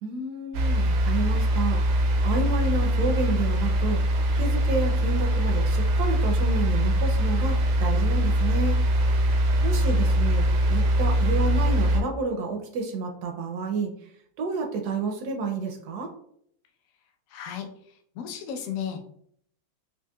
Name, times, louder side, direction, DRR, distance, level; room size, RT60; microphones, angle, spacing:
voice 1, 0.0-8.8 9.6-10.4 10.7-14.1 14.4-16.1, right 3 dB, 75° right, 2 dB, 0.9 m, -30 dB
sound 1, 0.5-12.0, equal, 90° right, 1.4 m, -22 dB
voice 2, 17.3-17.7 18.2-19.0, left 8 dB, 80° left, 4 dB, 0.7 m, -33 dB
4.4 x 2.8 x 2.2 m, 0.66 s
omnidirectional pair, 2.1 m